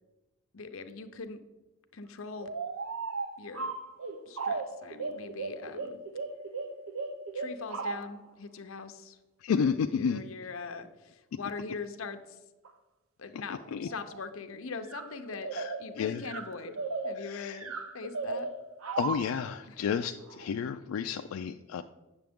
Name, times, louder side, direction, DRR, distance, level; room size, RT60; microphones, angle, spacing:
voice 1, 0.5-1.4 1.9-2.5 3.4-3.7 4.2-6.0 7.3-9.2 9.5-12.4 13.2-15.5 15.8-16.8 17.0-18.5 19.7-19.8 21.7-21.8, left 4 dB, 70° left, 8 dB, 0.7 m, -42 dB
sound 1, 2.4-8.2 12.6-12.7 13.6-14.2 14.9-19.4 20.3-20.5, right 4 dB, 75° right, 0.7 m, -36 dB
voice 2, 9.4-10.2 13.7-13.9 15.5-16.2 17.2-17.6 18.9-21.8, left 6 dB, 90° left, 6 dB, 0.3 m, -31 dB
8.9 x 6.8 x 3.6 m, 1.1 s
head